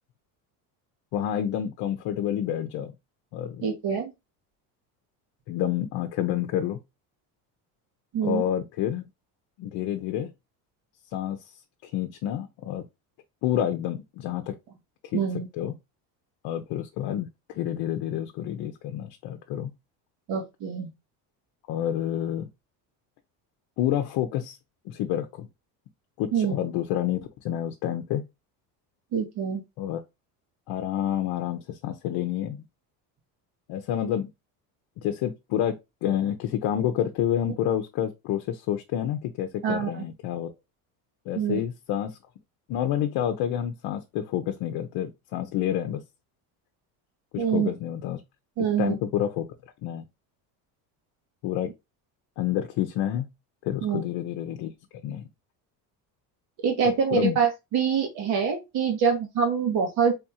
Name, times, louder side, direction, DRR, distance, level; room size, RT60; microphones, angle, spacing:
voice 1, 1.1-2.9 3.3-3.7 5.5-6.8 8.2-9.0 9.6-10.3 11.1-11.4 11.8-12.8 13.4-14.5 15.1-15.2 15.6-15.7 16.4-19.7 21.7-22.5 23.8-24.6 24.9-25.5 26.2-27.2 27.4-28.3 29.8-30.0 30.7-32.6 33.7-34.3 35.0-35.7 36.0-40.5 41.3-42.1 42.7-46.0 47.3-48.2 48.8-49.4 49.8-50.0 51.4-51.7 52.4-53.3 53.6-54.7 55.0-55.2 57.1-57.4, left 11 dB, 65° left, 0.7 m, -28 dB
voice 2, 3.6-4.1 8.1-8.4 15.1-15.5 20.3-20.9 26.3-26.5 29.1-29.6 39.6-40.0 41.3-41.6 47.4-47.7 48.6-49.0 53.8-54.0 56.6-60.1, right 7 dB, 65° right, 1.8 m, -25 dB
3.5 x 3.5 x 2.8 m
cardioid pair, 115°, 41 cm